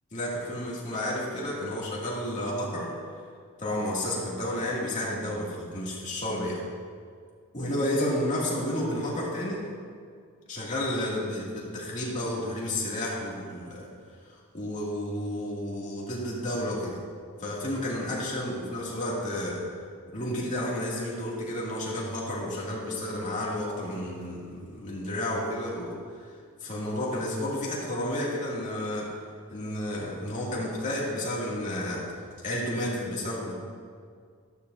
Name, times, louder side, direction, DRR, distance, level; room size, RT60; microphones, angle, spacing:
voice 1, 0.1-2.9 3.6-6.6 7.5-9.7 10.5-13.9 14.5-17.0 17.4-19.6 20.1-29.1 29.5-32.1 32.4-33.5, left 1 dB, 35° left, -5 dB, 2.4 m, -31 dB
12.5 x 12.5 x 2.7 m, 2.1 s
head